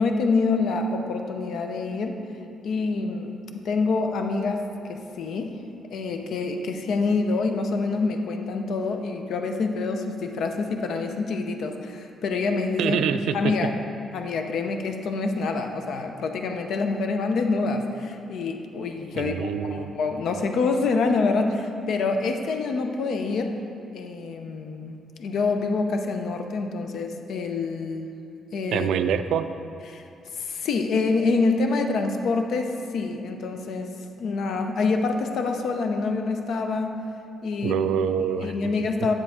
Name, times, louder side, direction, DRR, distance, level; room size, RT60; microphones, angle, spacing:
voice 1, 0.0-2.2 2.6-3.4 3.6-4.6 4.9-5.6 5.9-13.0 13.3-13.7 14.1-23.6 23.9-28.1 28.5-28.9 29.9-30.0 30.4-33.9 34.2-37.0 37.4-37.8 38.2-39.1, left 4 dB, 70° left, 5 dB, 0.7 m, -26 dB
voice 2, 12.8-13.5 19.1-19.9 28.7-29.5 37.6-38.7, right 8 dB, 80° right, 10 dB, 0.3 m, -25 dB
7.8 x 7.4 x 3.6 m, 2.6 s
cardioid pair, 90°, 0 cm